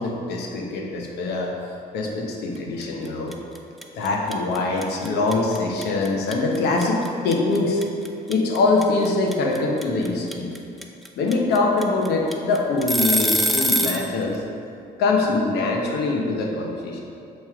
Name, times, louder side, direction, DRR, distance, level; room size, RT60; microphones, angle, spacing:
voice 1, 0.0-3.3 3.9-7.8 8.3-10.5 11.2-14.4 15.0-17.0, left 3 dB, 75° left, 0 dB, 0.9 m, -23 dB
sound 1, 2.8-3.1 3.3-14.1, right 1 dB, ahead, 0.4 m, -24 dB
7.2 x 3.2 x 4.7 m, 2.6 s
cardioid pair, 110°, 17 cm